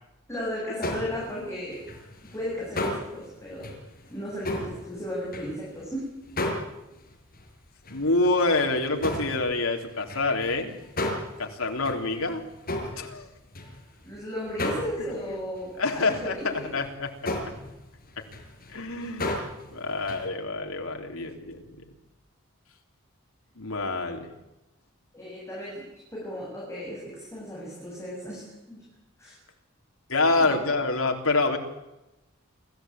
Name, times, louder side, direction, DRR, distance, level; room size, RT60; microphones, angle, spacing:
voice 1, 0.3-1.8 2.3-3.7 4.1-6.1 14.0-16.7 25.1-25.9 26.1-28.8 29.2-29.4 30.4-30.6, equal, 15° left, -5 dB, 7.9 m, -35 dB
sound 1, 0.8-1.4 1.7-5.9 6.2-7.4 7.8-8.1 8.4-14.1 14.5-15.3 15.6-15.7 16.1-16.3 16.8-16.9 17.3-19.7 20.0-20.3, left 1 dB, 45° left, 5.7 m, -34 dB
voice 2, 7.9-10.8 11.4-12.4 13.0-13.3 15.0-15.4 15.8-17.1 18.7-19.4 19.7-21.8 23.6-24.3 30.1-31.6, left 3 dB, 85° left, 3 dB, 3.7 m, -27 dB
27.5 x 15.0 x 9.0 m, 0.97 s
head